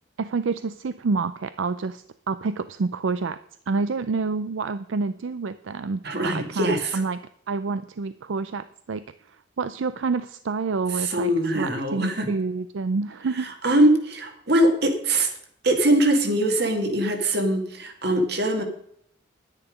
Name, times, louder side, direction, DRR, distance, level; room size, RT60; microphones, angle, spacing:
voice 1, 0.2-3.4 3.7-7.2 7.5-13.5, right 4 dB, 80° right, 13 dB, 0.5 m, -28 dB
voice 2, 6.0-7.0 10.9-12.3 13.3-15.3 15.6-18.6, right 1 dB, 55° right, 5 dB, 2.1 m, -22 dB
10.5 x 9.8 x 5.1 m, 0.67 s
head